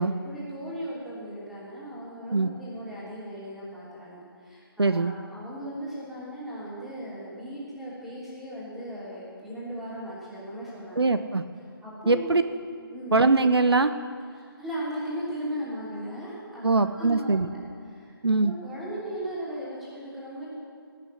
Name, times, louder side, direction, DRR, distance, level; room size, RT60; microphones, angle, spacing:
voice 1, 0.2-11.1 11.8-12.3 12.9-13.2 14.3-17.4 17.9-18.1 18.4-20.5, equal, ahead, -9 dB, 3.0 m, -37 dB
voice 2, 4.8-5.1 11.0-11.4 12.1-12.4 13.1-13.9 16.6-17.5 18.2-18.5, right 3 dB, 80° right, 11 dB, 0.6 m, -22 dB
18.0 x 6.6 x 8.3 m, 2.2 s
figure-of-eight pair, 145°, 13 cm